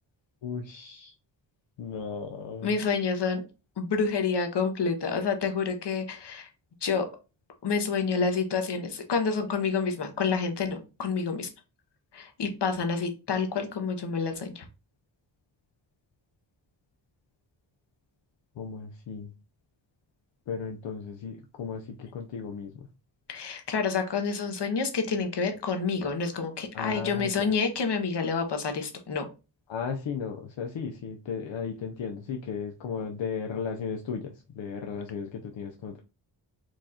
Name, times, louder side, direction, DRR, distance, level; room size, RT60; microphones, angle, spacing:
voice 1, 0.4-1.1 1.8-2.8 18.6-19.3 20.5-22.9 26.7-27.6 29.7-36.0, left 6 dB, 85° left, 3 dB, 0.7 m, -35 dB
voice 2, 2.6-3.4 3.8-6.5 6.8-7.1 7.6-11.5 12.1-14.6 23.3-29.3, left 5 dB, 65° left, 6 dB, 1.1 m, -28 dB
4.7 x 2.5 x 4.2 m, 0.31 s
cardioid pair, 70°, 44 cm